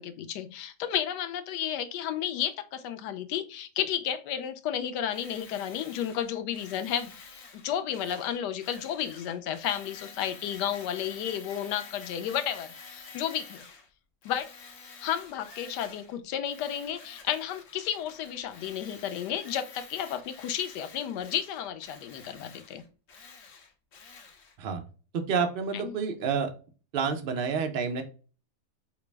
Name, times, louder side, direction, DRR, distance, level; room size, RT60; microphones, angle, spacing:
voice 1, 0.0-7.1 7.6-13.6 14.2-14.5 15.0-22.8 25.7-25.9, left 10 dB, 90° left, 1.2 m, -32 dB
Tools, 5.1-13.9 14.2-16.2 16.4-24.5, left 5 dB, 55° left, 1.0 m, -49 dB
voice 2, 25.1-26.5 26.9-28.0, right 6 dB, 65° right, 0.5 m, -29 dB
4.7 x 2.0 x 3.2 m
omnidirectional pair, 1.8 m